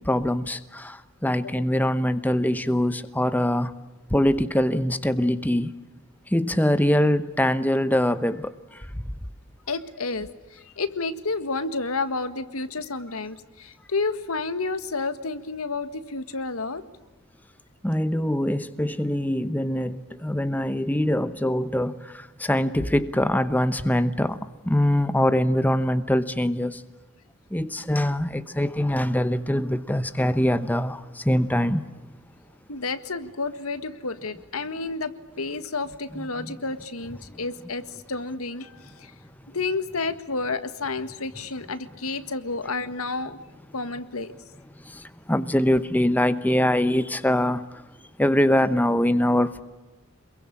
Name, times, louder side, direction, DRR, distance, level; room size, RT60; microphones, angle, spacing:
voice 1, 0.0-3.7 4.1-5.7 6.3-9.0 17.8-24.4 24.6-26.8 27.5-31.8 36.4-36.6 37.3-37.4 44.8-47.7 48.2-49.6, left 1 dB, 10° left, 12 dB, 0.9 m, -23 dB
voice 2, 9.7-16.8 32.7-35.1 35.4-39.1 39.5-43.4 43.7-44.3, left 3 dB, 85° left, 11 dB, 1.7 m, -30 dB
27.0 x 22.5 x 8.6 m, 1.1 s
head